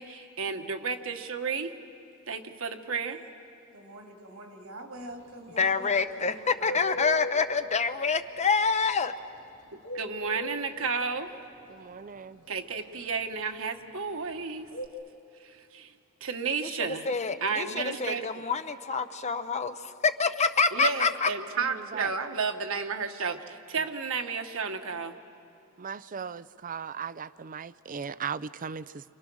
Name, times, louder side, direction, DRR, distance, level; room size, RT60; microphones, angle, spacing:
voice 1, 0.0-1.7 2.3-3.2 9.7-11.3 12.5-14.7 15.4-15.9 16.2-17.1 17.4-18.4 20.7-23.4 23.7-25.2, right 5 dB, 70° right, 6 dB, 1.5 m, -32 dB
voice 2, 3.7-7.0, right 1 dB, 85° right, 2 dB, 3.0 m, -45 dB
Bird, 4.9-14.9, equal, 70° left, 2.6 m, -39 dB
voice 3, 5.6-9.1 17.1-19.8 20.0-21.3, left 4 dB, 30° left, 9 dB, 0.8 m, -26 dB
voice 4, 11.7-12.4 21.9-22.1 25.8-29.0, right 6 dB, 40° right, 16 dB, 0.5 m, -37 dB
29.5 x 26.5 x 6.3 m, 2.7 s
head